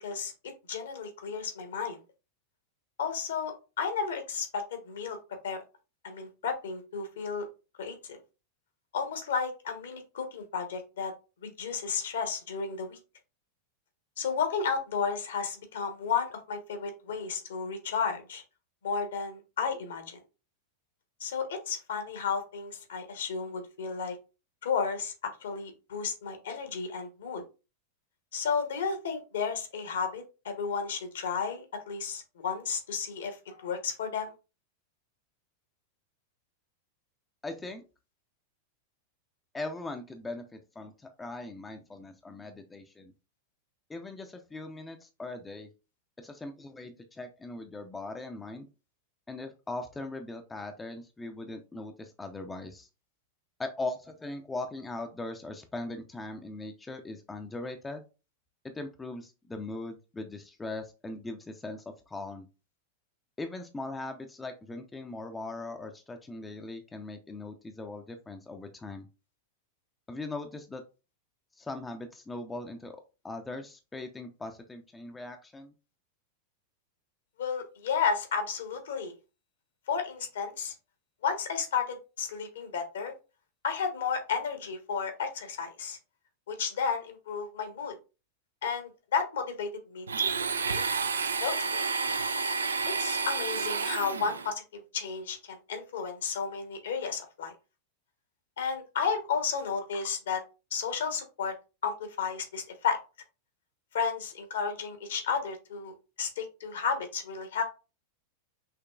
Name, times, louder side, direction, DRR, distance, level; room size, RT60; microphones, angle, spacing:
voice 1, 0.0-2.0 3.0-5.2 5.4-5.6 6.0-7.5 7.8-8.2 8.9-11.1 11.4-13.0 14.2-18.4 18.8-20.2 21.2-24.2 24.6-27.4 28.3-34.3 77.4-79.1 79.9-80.7 81.2-83.1 83.6-86.0 86.5-87.9 88.6-90.4 90.7-90.8 91.4-91.9 92.9-97.5 98.6-100.4 100.7-101.5 101.8-103.0 103.9-107.6, left 6 dB, 65° left, 7 dB, 1.1 m, -33 dB
voice 2, 37.4-37.8 39.5-43.1 43.9-45.7 46.2-48.7 49.3-52.9 53.6-58.0 58.7-62.5 63.4-69.1 70.1-70.8 71.5-73.0 73.2-75.7, left 2 dB, 10° left, 5 dB, 0.5 m, -40 dB
Domestic sounds home sounds, 90.1-94.5, right 5 dB, 70° right, 0.3 m, -30 dB
5.7 x 3.0 x 2.3 m, 0.31 s
figure-of-eight pair, 90°, 0 cm